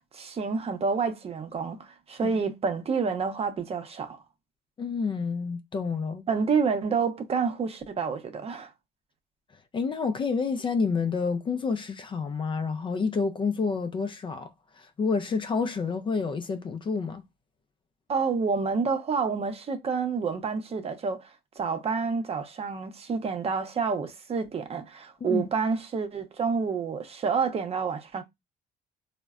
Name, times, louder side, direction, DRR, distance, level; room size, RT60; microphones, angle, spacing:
voice 1, 0.1-4.2 6.3-8.7 18.1-28.2, right 5 dB, 35° right, 0.7 m, -28 dB
voice 2, 4.8-6.2 9.7-17.2 25.2-25.5, left 5 dB, 30° left, 0.4 m, -29 dB
3.8 x 2.1 x 2.3 m
cardioid pair, 110°, 17 cm